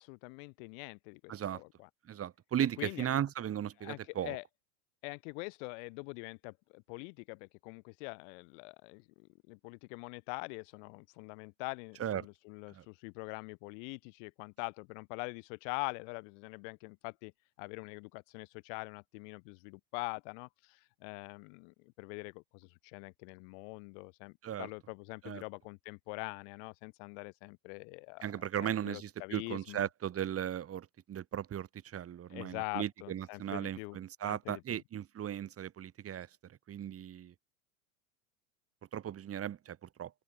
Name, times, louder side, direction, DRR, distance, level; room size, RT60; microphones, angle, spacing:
voice 1, 0.0-1.9 2.8-3.1 3.8-4.4 5.0-17.3 17.6-28.3 28.6-29.9 32.3-34.0 34.2-34.8, left 35 dB, 55° left, 6.2 m, -44 dB
voice 2, 1.3-1.6 2.1-4.4 12.0-12.2 12.7-12.8 24.4-24.7 25.2-25.4 28.2-37.3 38.9-40.1, right 10 dB, 30° right, 6.0 m, -37 dB
hypercardioid pair, 90°, 43 cm